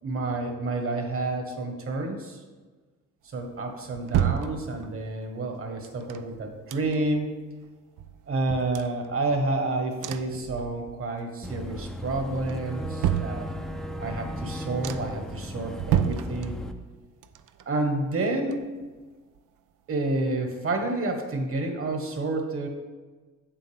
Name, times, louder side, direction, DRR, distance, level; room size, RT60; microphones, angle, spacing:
voice 1, 0.0-2.4 3.2-7.4 8.3-13.5 14.0-16.6 17.6-18.7 19.9-22.7, right 2 dB, 45° right, 4 dB, 1.5 m, -29 dB
sound 1, 3.4-5.1 5.8-7.3 7.6-7.7 8.0-9.6 10.0-11.2 11.5-12.0 12.5-13.9 14.4-14.5 14.8-15.3 15.7-16.9 17.2-19.0 19.4-19.5, right 10 dB, 75° right, 0.5 m, -31 dB
Boat Water vehicle / Engine, 11.4-16.7, equal, ahead, 0.6 m, -36 dB
7.9 x 7.6 x 3.5 m, 1.3 s
cardioid pair, 100°, 31 cm